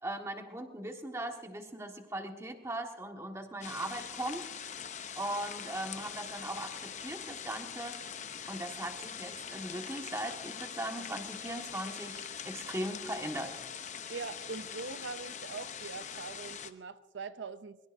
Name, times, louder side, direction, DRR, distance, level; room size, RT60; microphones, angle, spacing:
voice 1, 0.0-4.4 5.1-8.0 8.5-13.6, right 1 dB, 15° right, 3 dB, 1.5 m, -39 dB
sound 1, 3.6-16.7, left 7 dB, 40° left, 0.7 m, -43 dB
voice 2, 14.1-17.8, right 4 dB, 85° right, 12 dB, 0.5 m, -42 dB
23.0 x 22.5 x 2.6 m, 1.2 s
head